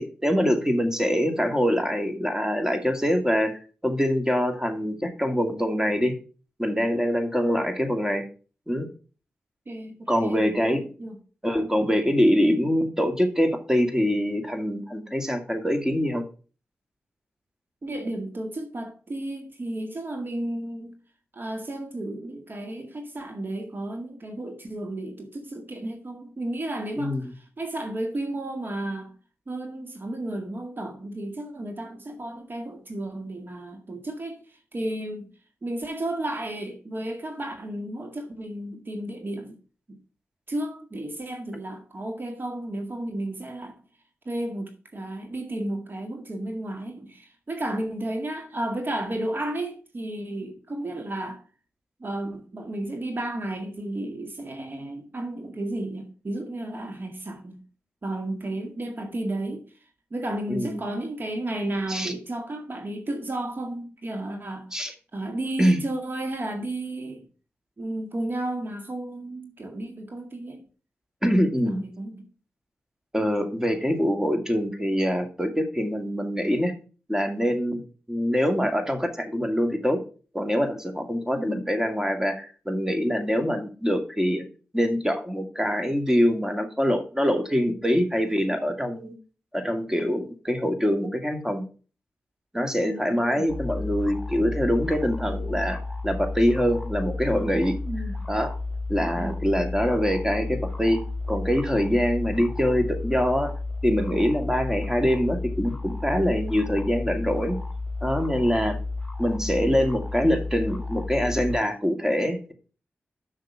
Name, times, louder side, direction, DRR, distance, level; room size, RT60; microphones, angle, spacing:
voice 1, 0.0-6.1 6.6-8.2 8.7-8.9 10.1-10.8 11.4-16.2 27.0-27.2 60.5-60.8 61.9-62.1 64.7-64.9 65.6-65.8 71.2-71.8 73.1-76.7 77.1-77.8 78.1-80.0 80.3-84.4 84.7-89.1 89.5-91.6 92.5-95.8 96.0-97.7 98.3-98.5 98.9-101.0 101.3-103.5 103.8-107.6 108.0-108.8 109.2-112.5, equal, 10° right, 2.3 m, -24 dB
voice 2, 9.7-11.2 17.8-21.0 21.3-29.1 29.5-35.3 35.6-39.6 39.9-40.0 40.5-43.7 44.3-51.4 52.0-57.6 58.0-59.7 60.1-64.7 65.1-67.2 67.8-70.6 71.8-72.3 81.3-81.6 92.8-93.5 97.9-98.2 99.1-99.4, right 1 dB, 50° right, 1.9 m, -33 dB
sound 1, 93.5-111.6, left 3 dB, 5° left, 2.1 m, -32 dB
6.6 x 6.1 x 6.2 m
cardioid pair, 45°, 5 cm